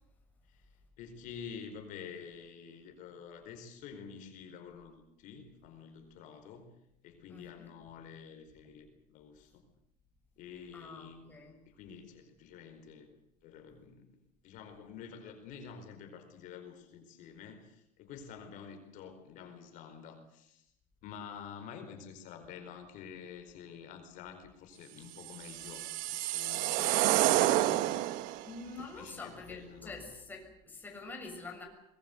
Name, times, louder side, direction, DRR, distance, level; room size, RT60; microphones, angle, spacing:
voice 1, 1.0-6.7 7.0-9.7 10.4-13.2 13.4-14.1 14.4-20.7 21.0-27.9 28.8-30.1, left 7 dB, 60° left, 6 dB, 4.6 m, -49 dB
voice 2, 7.3-7.7 10.7-11.6 28.4-31.7, left 3 dB, 10° left, 1 dB, 6.7 m, -46 dB
sound 1, 25.3-28.5, right 15 dB, 65° right, 1.2 m, -29 dB
24.0 x 21.5 x 8.0 m, 0.77 s
cardioid pair, 155°, 15 cm